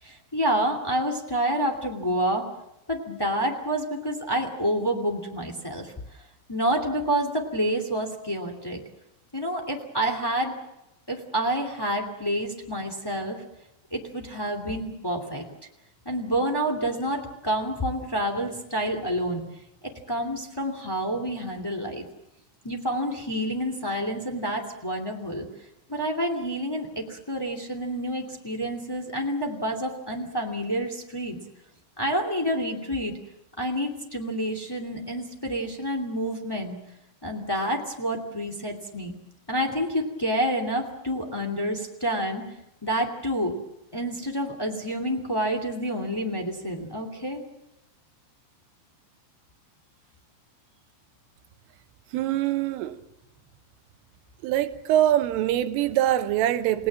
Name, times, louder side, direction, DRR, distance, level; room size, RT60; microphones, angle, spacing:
voice 1, 0.0-2.5 2.9-5.9 6.5-8.8 9.3-10.5 11.1-13.4 13.9-15.5 16.0-19.4 20.1-22.0 22.6-25.5 25.9-31.4 32.0-33.2 33.6-36.8 37.2-39.1 39.5-42.4 42.8-43.6 43.9-47.4, right 1 dB, 30° left, 0.4 m, -28 dB
voice 2, 52.1-53.0 54.4-56.9, right 12 dB, 85° right, 3.6 m, -23 dB
29.0 x 18.5 x 7.5 m
omnidirectional pair, 5.7 m